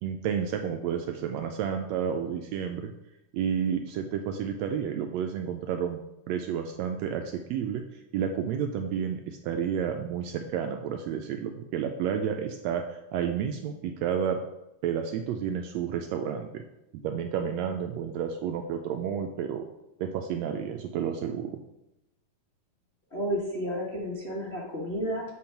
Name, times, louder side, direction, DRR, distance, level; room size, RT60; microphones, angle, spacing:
voice 1, 0.0-2.9 3.3-6.0 6.3-7.8 8.1-14.4 14.8-16.6 17.0-19.7 20.0-21.6, right 8 dB, 80° right, 5 dB, 1.6 m, -31 dB
voice 2, 23.1-25.2, equal, 75° left, -5 dB, 0.6 m, -31 dB
7.8 x 4.0 x 5.7 m, 0.89 s
omnidirectional pair, 3.5 m